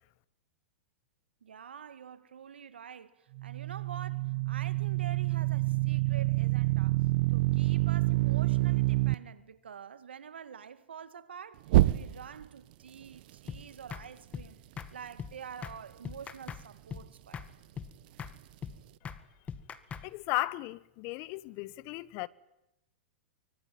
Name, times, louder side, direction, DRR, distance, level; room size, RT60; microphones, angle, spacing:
voice 1, 1.4-14.6 14.9-17.5, right 7 dB, 85° right, 2.0 m, -47 dB
sound 1, 3.4-9.1 11.7-12.4, right 19 dB, 60° right, 1.0 m, -27 dB
sound 2, 13.5-13.6 13.9-14.1 14.3-14.5 14.8-14.9 15.2-15.3 15.6-15.8 16.0-16.6 16.9-17.1 17.3-17.5 17.8-17.9 18.2-18.3 18.6-18.8 19.0-19.2 19.5-20.1, left 7 dB, 25° left, 1.9 m, -40 dB
voice 2, 20.0-22.3, left 20 dB, 45° left, 1.1 m, -35 dB
24.5 x 24.0 x 9.3 m
hypercardioid pair, 115°, 6 cm